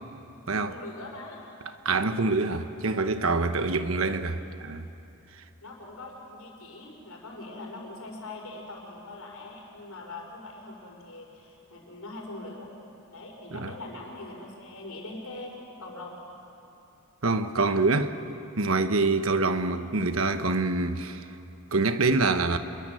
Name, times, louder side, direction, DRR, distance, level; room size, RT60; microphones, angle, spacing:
voice 1, 0.5-1.4 3.5-3.8 5.6-12.7 13.1-15.5 15.8-16.2, left 2 dB, 90° left, 5.7 m, -42 dB
voice 2, 1.8-4.9 13.5-13.7 17.2-18.1 18.6-21.3 21.7-22.6, right 3 dB, 70° right, 1.2 m, -25 dB
28.5 x 22.0 x 7.7 m
head